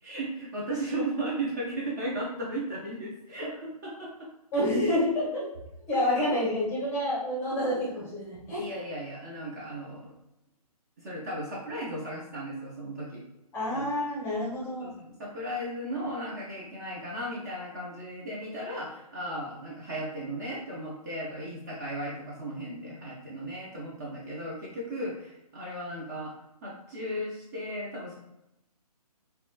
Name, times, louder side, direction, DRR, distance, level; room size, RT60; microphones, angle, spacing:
voice 1, 0.0-4.3 5.9-6.0 8.6-10.1 11.0-13.2 13.7-13.9 14.8-26.3 26.6-28.2, right 1 dB, 30° right, -5 dB, 0.5 m, -36 dB
voice 2, 4.5-5.4 5.9-8.7 13.5-14.9, left 1 dB, 10° left, -6 dB, 0.7 m, -28 dB
2.9 x 2.2 x 2.3 m, 0.88 s
figure-of-eight pair, 140°, 20 cm